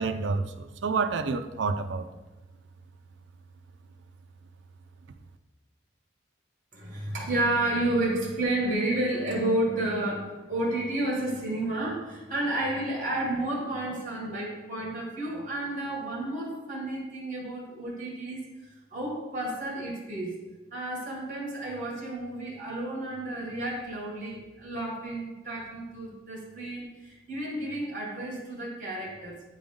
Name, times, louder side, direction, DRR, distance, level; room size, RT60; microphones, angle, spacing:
voice 1, 0.0-2.1, right 4 dB, 70° right, 9 dB, 0.4 m, -29 dB
voice 2, 6.7-18.4 18.9-20.4 20.7-29.4, right 1 dB, 45° right, -1 dB, 1.7 m, -31 dB
8.7 x 3.8 x 3.6 m, 1.1 s
head